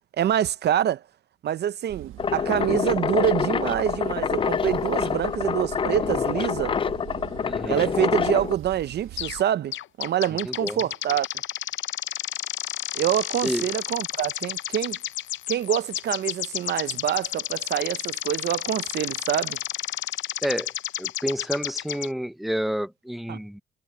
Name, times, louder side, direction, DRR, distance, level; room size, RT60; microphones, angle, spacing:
voice 1, 0.2-1.0 1.4-6.7 7.7-11.3 12.9-15.0 15.5-19.6 23.3-23.4, right 10 dB, 60° right, 0.5 m, -26 dB
sound 1, 1.9-9.4, right 13 dB, 85° right, 1.3 m, -41 dB
sound 2, 2.2-8.5, left 6 dB, 25° left, 0.4 m, -26 dB
voice 2, 7.4-7.9 10.5-10.8 13.4-13.7 20.4-20.7 21.0-23.6, equal, ahead, 0.8 m, -29 dB
sound 3, 9.2-9.4 9.7-22.1, left 13 dB, 70° left, 0.6 m, -32 dB
cardioid pair, 90°, 20 cm